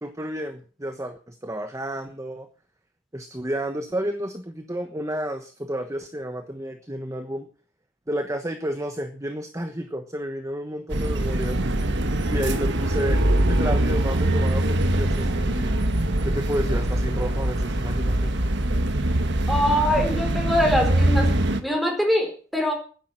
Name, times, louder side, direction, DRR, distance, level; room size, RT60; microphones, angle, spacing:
voice 1, 0.0-2.5 3.1-7.5 8.1-11.8 12.3-13.2 13.5-15.8 16.2-18.3, equal, 15° right, 7 dB, 1.1 m, -31 dB
sound 1, 10.9-21.6, right 1 dB, 60° right, 1.5 m, -23 dB
voice 2, 19.5-21.3 21.6-22.7, equal, ahead, 2 dB, 4.4 m, -23 dB
11.5 x 10.5 x 7.7 m, 0.40 s
head